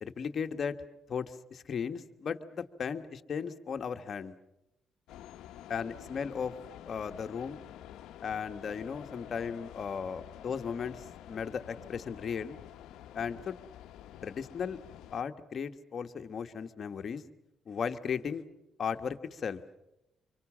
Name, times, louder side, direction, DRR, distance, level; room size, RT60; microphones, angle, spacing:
voice 1, 0.0-0.8 1.1-4.3 5.7-6.6 6.9-7.6 8.2-12.6 13.1-13.6 14.2-14.8 15.1-17.2 17.7-18.4 18.8-19.6, left 6 dB, 50° left, 8 dB, 1.3 m, -36 dB
sound 1, 5.1-15.2, left 11 dB, 85° left, 0.8 m, -49 dB
25.5 x 24.0 x 7.4 m, 0.92 s
cardioid pair, 90°, 0 cm